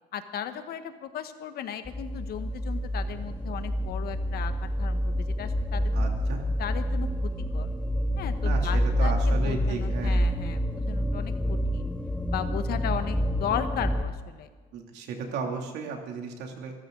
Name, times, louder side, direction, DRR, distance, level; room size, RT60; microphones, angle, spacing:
voice 1, 0.1-5.9 6.6-7.7 8.2-11.9 12.3-14.5, left 9 dB, 65° left, 9 dB, 1.4 m, -36 dB
sound 1, 1.9-14.0, equal, 5° left, 1.0 m, -27 dB
voice 2, 5.9-6.4 8.4-10.2 14.7-16.7, right 5 dB, 85° right, 2 dB, 2.8 m, -35 dB
24.5 x 13.5 x 3.9 m, 1.4 s
cardioid pair, 110°, 17 cm